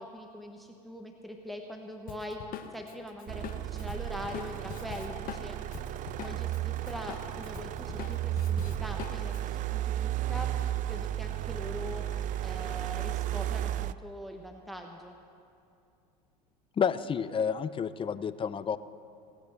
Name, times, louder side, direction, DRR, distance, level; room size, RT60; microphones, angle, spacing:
voice 1, 0.0-5.6 6.2-10.5 10.8-12.0 12.4-15.1, equal, ahead, 4 dB, 1.1 m, -42 dB
Drum kit, 2.1-6.6 6.9-9.4, left 9 dB, 45° left, 1.1 m, -43 dB
sound 1, 3.3-13.9, right 12 dB, 40° right, 0.4 m, -34 dB
voice 2, 16.8-18.8, left 7 dB, 25° left, 14 dB, 0.5 m, -30 dB
18.5 x 8.3 x 6.3 m, 2.5 s
hypercardioid pair, 80°, 20 cm